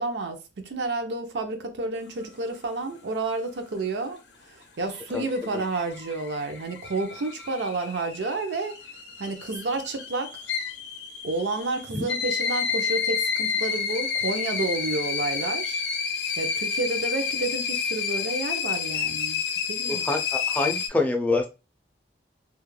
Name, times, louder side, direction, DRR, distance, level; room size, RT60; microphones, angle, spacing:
voice 1, 0.0-4.2 4.5-8.8 9.2-10.4 11.2-15.8 16.4-19.4 19.7-20.1, right 3 dB, 80° right, 0.5 m, -30 dB
sound 1, 4.6-20.9, left 6 dB, 70° left, 0.5 m, -30 dB
voice 2, 19.9-21.5, left 2 dB, 10° left, 0.4 m, -26 dB
2.3 x 2.1 x 3.0 m
head